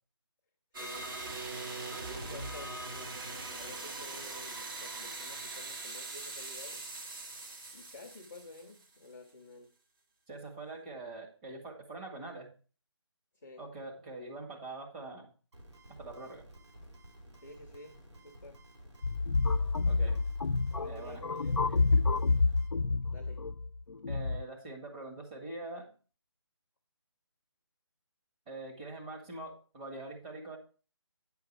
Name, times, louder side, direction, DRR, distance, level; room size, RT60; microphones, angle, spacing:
sound 1, 0.7-9.1, right 2 dB, 45° right, 2.1 m, -41 dB
voice 1, 2.0-3.2 3.5-6.9 7.7-9.7 13.4-13.6 17.4-17.9 18.2-18.6 20.7-21.7 23.1-23.4, left 2 dB, 5° left, -5 dB, 0.3 m, -50 dB
voice 2, 10.3-12.5 13.6-15.3 16.0-16.4 19.8-20.2 20.8-21.2 21.9-22.1 24.1-25.9 28.5-30.6, right 2 dB, 15° right, 0 dB, 1.5 m, -44 dB
sound 2, 15.5-22.7, right 1 dB, 75° right, 3.5 m, -54 dB
sound 3, 19.0-24.4, left 3 dB, 90° left, 0.6 m, -29 dB
9.6 x 5.7 x 4.5 m, 0.36 s
figure-of-eight pair, 165°, 15 cm